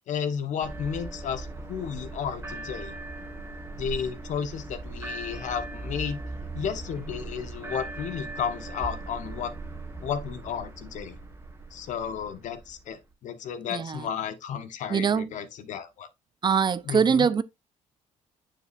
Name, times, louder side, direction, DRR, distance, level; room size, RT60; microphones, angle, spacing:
voice 1, 0.1-2.9 3.7-6.2 6.5-9.5 10.0-11.2 11.7-16.1 16.9-17.3, left 7 dB, 65° left, 1.0 m, -33 dB
sound 1, 0.6-13.0, right 2 dB, 20° right, 1.5 m, -39 dB
voice 2, 13.7-14.1 14.9-15.3 16.4-17.4, right 6 dB, 35° right, 0.5 m, -23 dB
6.9 x 6.3 x 2.4 m
cardioid pair, 95°, 14 cm